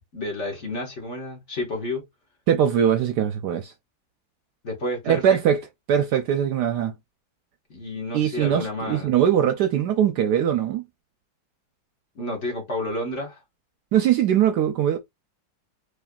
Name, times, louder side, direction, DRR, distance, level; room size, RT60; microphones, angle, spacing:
voice 1, 0.1-2.0 4.6-5.4 7.7-9.1 12.1-13.4, left 1 dB, 40° left, 1.6 m, -30 dB
voice 2, 2.5-3.7 5.1-5.6 5.9-6.9 8.1-10.8 13.9-15.0, right 9 dB, 70° right, 1.1 m, -21 dB
4.2 x 3.2 x 2.3 m
omnidirectional pair, 2.0 m